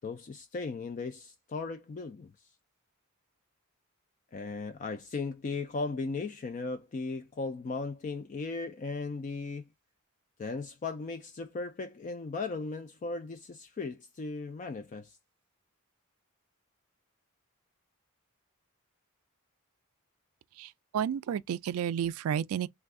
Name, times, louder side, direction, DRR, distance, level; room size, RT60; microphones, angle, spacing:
voice 1, 0.0-2.5 4.3-9.7 10.4-15.2, left 3 dB, 35° left, 0.3 m, -37 dB
voice 2, 20.6-22.7, right 8 dB, 75° right, 0.3 m, -31 dB
3.4 x 2.3 x 3.5 m
head